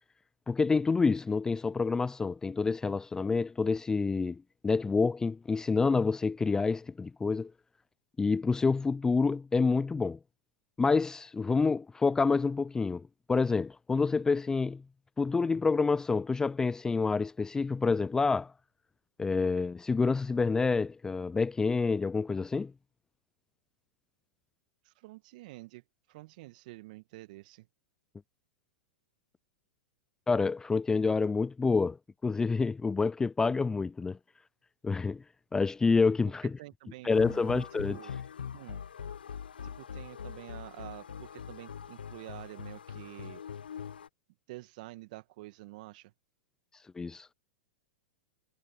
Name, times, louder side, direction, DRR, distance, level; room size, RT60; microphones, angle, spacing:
voice 1, 0.5-7.5 8.2-10.2 10.8-14.8 15.2-18.5 19.2-22.7 30.3-32.0 32.2-34.2 34.8-35.2 35.5-36.5 37.0-38.0 47.0-47.3, left 4 dB, 10° left, 0.5 m, -28 dB
voice 2, 24.8-27.7 36.4-38.1 38.5-38.8 39.6-43.4 44.5-46.1, right 20 dB, 55° right, 2.2 m, -48 dB
sound 1, 37.1-44.1, left 7 dB, 80° left, 1.2 m, -42 dB
hypercardioid pair, 105°, 5 cm